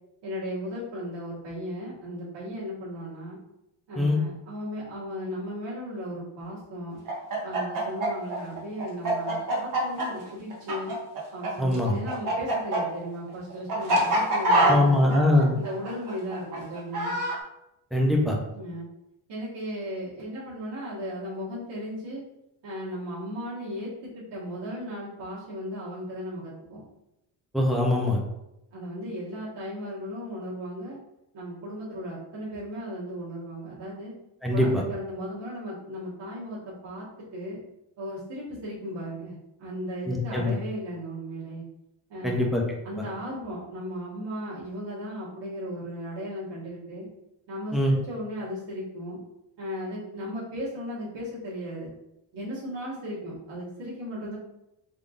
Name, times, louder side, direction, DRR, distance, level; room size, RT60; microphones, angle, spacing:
voice 1, 0.2-3.4 3.9-7.0 7.4-10.9 11.3-15.2 15.5-17.2 18.5-18.9 19.3-22.2 22.6-26.8 28.7-31.0 31.3-34.1 34.5-37.0 37.3-37.6 38.0-39.3 39.6-41.6 42.1-42.5 42.8-47.1 47.5-49.2 49.6-51.9 52.3-54.4, equal, 55° right, -9 dB, 1.5 m, -36 dB
Chicken rooster, 7.0-11.5 11.7-17.4, right 1 dB, 40° right, 1.1 m, -25 dB
voice 2, 11.6-12.0 14.7-15.5 17.9-18.4 27.5-28.2 34.4-34.8 40.1-40.6 42.2-42.6 47.7-47.9, left 1 dB, ahead, -2 dB, 0.4 m, -22 dB
3.8 x 3.4 x 2.4 m, 0.87 s
cardioid pair, 150°, 50 cm